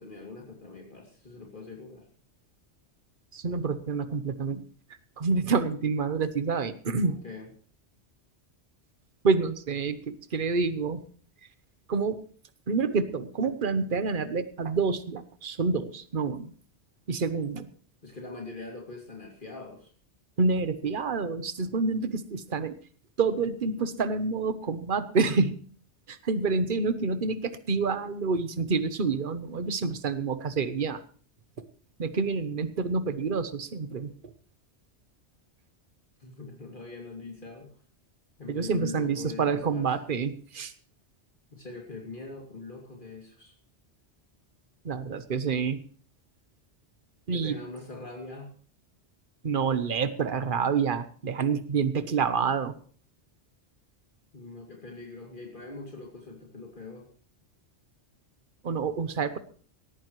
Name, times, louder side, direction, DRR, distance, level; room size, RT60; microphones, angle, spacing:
voice 1, 0.0-2.1 7.0-7.5 18.0-19.9 36.2-37.7 38.4-39.9 41.5-43.5 47.3-48.5 54.3-57.1, left 3 dB, 45° left, 0 dB, 2.9 m, -42 dB
voice 2, 3.3-4.6 5.2-7.2 9.2-11.0 11.9-12.2 12.7-16.5 17.1-17.7 20.4-22.8 23.2-25.6 26.1-31.0 32.0-34.3 38.5-40.7 44.8-45.8 47.3-47.6 49.4-52.7 58.6-59.4, right 4 dB, 50° right, 12 dB, 1.2 m, -28 dB
18.5 x 14.5 x 3.2 m, 0.43 s
omnidirectional pair, 1.2 m